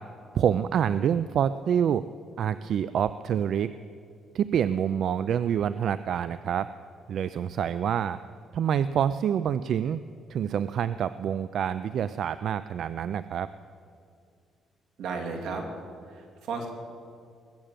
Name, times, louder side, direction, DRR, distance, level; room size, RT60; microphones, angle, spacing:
voice 1, 0.3-2.0 2.4-3.7 4.3-6.7 7.1-8.2 8.5-10.0 10.3-13.5, right 8 dB, 55° right, 14 dB, 0.3 m, -27 dB
voice 2, 15.0-15.6 16.1-16.7, right 4 dB, 80° right, 1 dB, 2.8 m, -34 dB
20.5 x 7.6 x 8.9 m, 2.3 s
cardioid pair, 145°, 0 cm